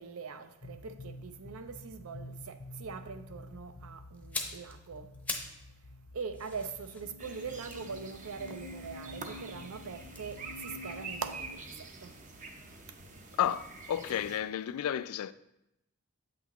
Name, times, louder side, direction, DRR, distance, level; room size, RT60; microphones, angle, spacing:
voice 1, 0.0-5.1 6.1-11.6 12.0-12.1 14.1-14.2, right 5 dB, 70° right, 0.5 m, -42 dB
sound 1, 0.6-11.5, left 2 dB, 45° left, 0.6 m, -49 dB
sound 2, 4.1-5.7 6.0-9.2 10.0-12.1 12.3-12.5, left 3 dB, 5° left, 0.6 m, -43 dB
sound 3, 7.2-14.4, right 3 dB, 35° right, 0.7 m, -47 dB
voice 2, 13.4-15.3, left 10 dB, 85° left, 0.3 m, -32 dB
8.1 x 6.0 x 3.0 m
head